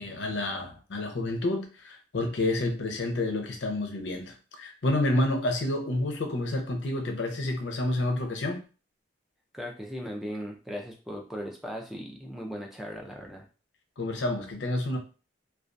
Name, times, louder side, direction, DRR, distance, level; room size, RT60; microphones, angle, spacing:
voice 1, 0.0-8.6 14.0-15.0, left 2 dB, 60° left, 0.5 m, -29 dB
voice 2, 9.5-13.5, equal, ahead, 0.3 m, -38 dB
2.2 x 2.2 x 2.5 m
head